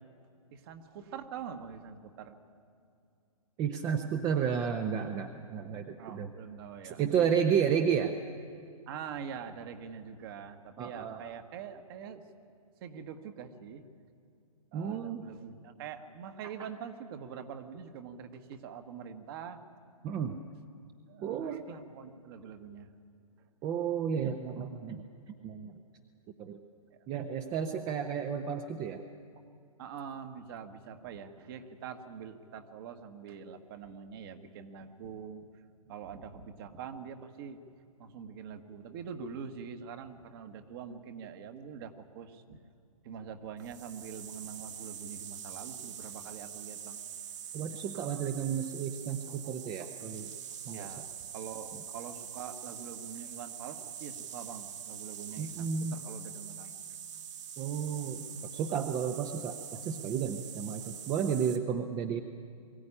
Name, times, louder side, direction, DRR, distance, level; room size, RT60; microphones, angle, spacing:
voice 1, 0.5-2.3 6.0-7.7 8.9-12.2 12.8-13.8 14.7-19.6 21.1-22.9 26.9-27.0 29.8-35.5 35.9-37.6 38.0-42.6 43.0-47.0 50.7-56.7 61.2-61.3, right 7 dB, 40° right, 7 dB, 1.5 m, -44 dB
voice 2, 3.6-6.3 6.8-8.1 10.8-11.2 14.7-15.3 20.0-20.4 21.2-21.7 23.6-25.0 25.4-25.7 26.4-26.6 27.1-29.0 47.5-50.3 50.7-50.9 55.4-55.9 57.6-58.2 58.5-62.2, right 7 dB, 20° right, 6 dB, 0.8 m, -32 dB
sound 1, 43.6-61.6, right 8 dB, 55° right, 1.8 m, -44 dB
22.5 x 15.0 x 9.9 m, 2.4 s
hypercardioid pair, 140°, 19 cm